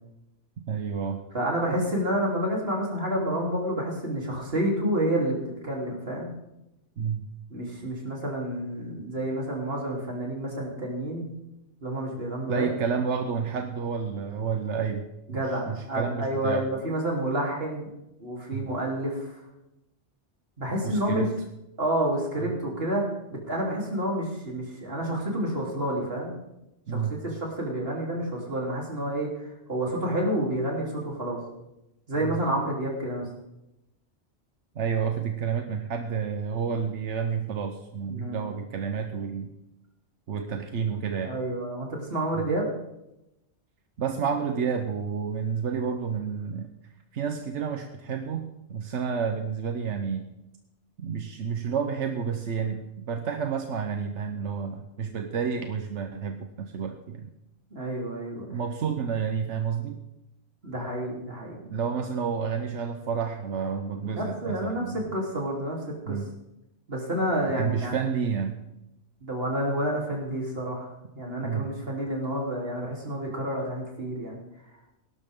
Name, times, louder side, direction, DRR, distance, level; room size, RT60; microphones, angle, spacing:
voice 1, 0.7-1.2 7.0-7.3 12.5-16.7 18.5-18.7 20.8-21.3 22.4-22.5 26.9-27.2 32.2-32.4 34.7-39.5 40.3-41.4 42.4-42.5 44.0-46.7 47.1-50.3 51.0-57.3 58.5-60.0 61.7-65.1 66.1-66.3 67.5-68.6 71.4-71.7, right 6 dB, 85° right, 5 dB, 1.2 m, -30 dB
voice 2, 1.3-5.4 5.6-6.3 7.5-11.2 11.8-12.7 15.3-17.9 18.2-19.4 20.6-21.3 21.8-23.0 23.5-26.3 26.9-31.4 32.1-33.3 38.1-38.5 41.2-42.7 57.7-58.5 60.6-61.6 64.1-65.8 66.1-66.2 66.9-68.0 69.2-74.4, right 1 dB, 55° right, -2 dB, 3.7 m, -29 dB
18.0 x 12.0 x 3.7 m, 0.88 s
omnidirectional pair, 1.2 m